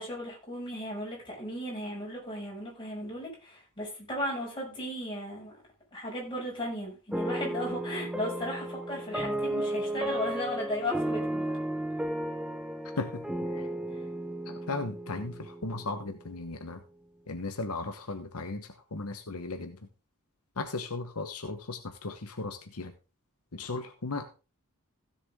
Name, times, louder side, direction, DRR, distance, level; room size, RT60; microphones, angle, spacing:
voice 1, 0.0-5.5 5.9-11.6, left 1 dB, 20° left, -3 dB, 6.0 m, -36 dB
sound 1, 7.1-16.3, right 1 dB, 5° right, 0.8 m, -34 dB
voice 2, 13.0-13.7 14.4-16.8 17.3-19.8 20.6-22.9 23.5-24.4, left 3 dB, 80° left, 6 dB, 1.2 m, -36 dB
16.0 x 7.2 x 3.7 m, 0.32 s
head